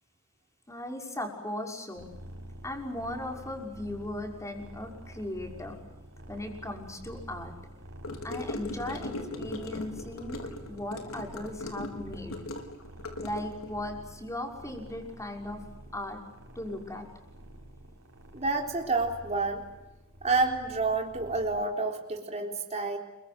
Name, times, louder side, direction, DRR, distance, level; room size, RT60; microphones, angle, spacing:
voice 1, 0.7-2.1 2.6-5.8 6.3-7.5 8.2-12.3 13.2-15.6 15.9-16.2 16.5-17.1, left 1 dB, 15° left, 2 dB, 6.0 m, -37 dB
sound 1, 2.0-21.7, right 1 dB, 65° right, 5.4 m, -48 dB
Gurgling / Car passing by / Sink (filling or washing), 8.0-13.7, left 2 dB, 75° left, 5.1 m, -38 dB
voice 2, 18.3-19.6 20.2-23.0, right 3 dB, 30° right, 2 dB, 3.9 m, -29 dB
29.5 x 24.0 x 8.0 m, 0.98 s
head